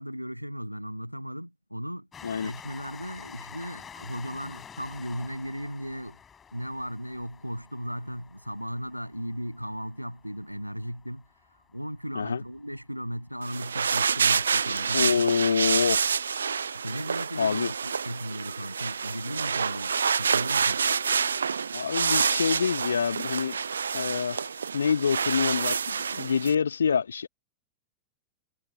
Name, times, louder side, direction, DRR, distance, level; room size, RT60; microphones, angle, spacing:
voice 1, 0.0-2.1 2.4-6.2 6.5-15.4 16.7-20.8, equal, 90° right, 6.9 m, -36 dB
Train, 2.1-13.3 14.0-14.1 14.3-14.4, left 7 dB, 20° left, 5.6 m, -49 dB
sound 1, 13.4-26.5, right 6 dB, 70° right, 0.5 m, -28 dB
voice 2, 14.9-16.0 17.4-17.7 21.7-23.6 23.9-27.3, left 6 dB, 70° left, 2.0 m, -26 dB
figure-of-eight pair, 90°, 0 cm